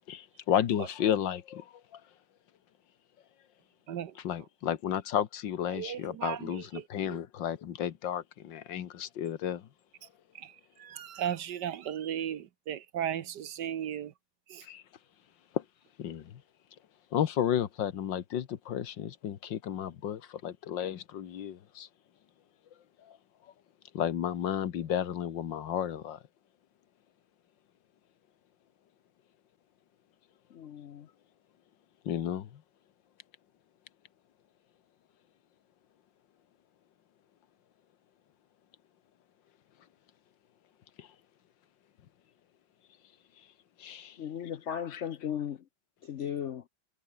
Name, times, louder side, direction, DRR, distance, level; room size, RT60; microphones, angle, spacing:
voice 1, 0.1-2.0 4.2-9.7 14.6-14.8 15.5-15.6 16.0-16.4 17.1-21.9 23.1-23.2 23.9-26.2 32.1-32.6 41.0-41.1 43.8-44.2 44.7-45.0, left 10 dB, 80° left, 1.9 m, -33 dB
voice 2, 5.7-6.6 7.1-7.2 10.4-10.5 10.8-14.1 14.5-14.6, right 10 dB, 65° right, 1.6 m, -35 dB
voice 3, 30.5-31.1 44.2-45.6 46.0-46.6, left 9 dB, 60° left, 0.7 m, -36 dB
omnidirectional pair, 2.0 m